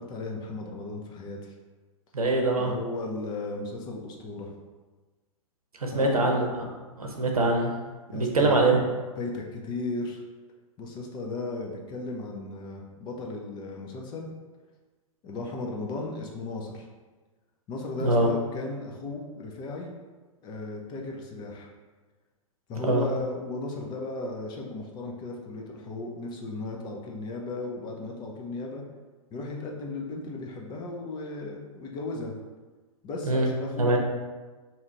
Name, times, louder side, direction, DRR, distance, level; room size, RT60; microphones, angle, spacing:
voice 1, 0.0-1.5 2.6-4.5 5.9-6.3 8.1-8.8 9.2-10.2 10.8-14.3 15.2-16.9 17.7-19.9 20.4-21.7 22.7-28.8 29.3-32.3 33.0-34.0, left 2 dB, 25° left, 0 dB, 0.4 m, -35 dB
voice 2, 2.1-2.7 5.8-6.5 7.0-7.7 8.1-8.8 18.0-18.3 22.9-23.1 33.2-33.5 33.8-34.0, right 2 dB, 90° right, 1 dB, 0.7 m, -23 dB
2.8 x 2.4 x 4.2 m, 1.3 s
hypercardioid pair, 110°, 18 cm